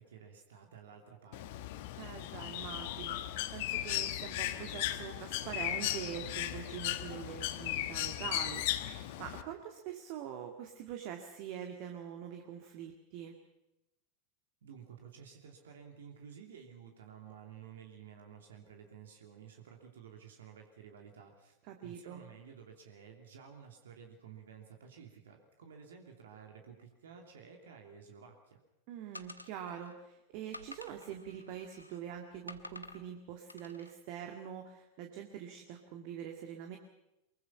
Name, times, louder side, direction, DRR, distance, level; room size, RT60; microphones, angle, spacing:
voice 1, 0.0-1.7 14.6-21.6 21.8-28.6, right 7 dB, 60° right, 3 dB, 2.8 m, -53 dB
Bird, 1.3-9.4, left 14 dB, 50° left, 1.3 m, -37 dB
voice 2, 2.0-13.3 21.7-22.2 28.9-36.8, right 9 dB, 45° right, 4 dB, 2.0 m, -44 dB
sound 1, 29.1-29.9 30.5-32.0 32.5-33.0 33.5-33.9, left 2 dB, 85° left, 1.1 m, -50 dB
24.0 x 22.5 x 5.8 m, 0.93 s
figure-of-eight pair, 90°, 0 cm